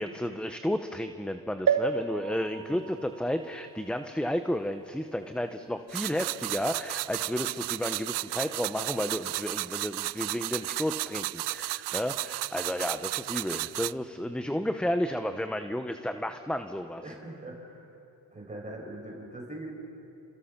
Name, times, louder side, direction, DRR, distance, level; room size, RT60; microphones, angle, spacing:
voice 1, 0.0-17.0, left 1 dB, ahead, 8 dB, 0.9 m, -32 dB
sound 1, 1.7-5.3 5.9-6.0 6.2-6.3, right 6 dB, 50° right, 1.7 m, -32 dB
voice 2, 2.5-2.9 14.6-14.8 17.0-17.9 18.3-19.7, right 1 dB, 15° right, -1 dB, 6.6 m, -42 dB
sound 2, 5.9-13.9, right 19 dB, 70° right, 0.5 m, -34 dB
29.0 x 27.0 x 5.9 m, 2.8 s
cardioid pair, 100°, 42 cm